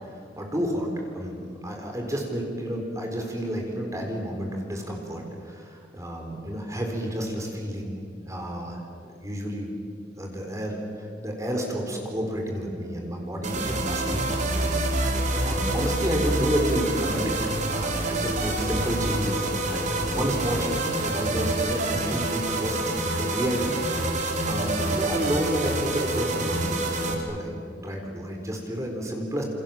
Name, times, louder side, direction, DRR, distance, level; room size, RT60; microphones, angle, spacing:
voice 1, 0.1-8.8 9.2-9.7 10.2-17.4 17.7-29.4, equal, 20° right, 1 dB, 4.2 m, -31 dB
sound 1, 13.4-27.1, right 2 dB, 45° right, 3.8 m, -27 dB
29.0 x 27.5 x 7.4 m, 2.2 s
head